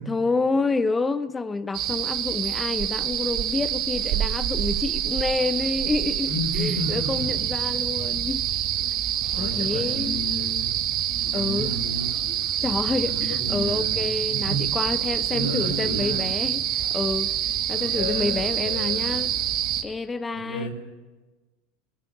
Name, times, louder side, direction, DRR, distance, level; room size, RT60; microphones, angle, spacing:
voice 1, 0.1-8.5 9.4-10.3 11.3-11.7 12.6-17.3 17.7-19.3 19.8-20.7, left 3 dB, 15° left, 0.7 m, -28 dB
sound 1, 1.7-19.8, right 10 dB, 50° right, 1.5 m, -26 dB
voice 2, 6.2-7.4 9.3-12.1 13.0-14.6 15.3-16.3 17.7-19.2 20.3-20.7, equal, 90° left, 5.5 m, -33 dB
17.5 x 16.5 x 10.0 m
supercardioid pair, 110°, 0 cm